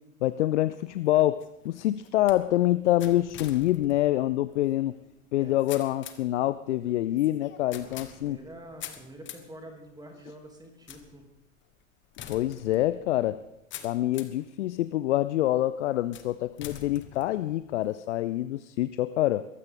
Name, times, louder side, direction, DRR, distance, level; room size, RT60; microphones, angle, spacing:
voice 1, 0.2-5.0 5.3-8.4 12.3-13.4 13.8-19.5, left 14 dB, 60° left, 15 dB, 0.6 m, -26 dB
sound 1, 0.9-14.5 15.0-15.5 16.1-17.9, left 10 dB, 30° left, 1.5 m, -47 dB
voice 2, 7.9-11.3, right 1 dB, 10° right, 2 dB, 3.0 m, -47 dB
22.0 x 15.5 x 3.8 m, 0.89 s
figure-of-eight pair, 90°, 41 cm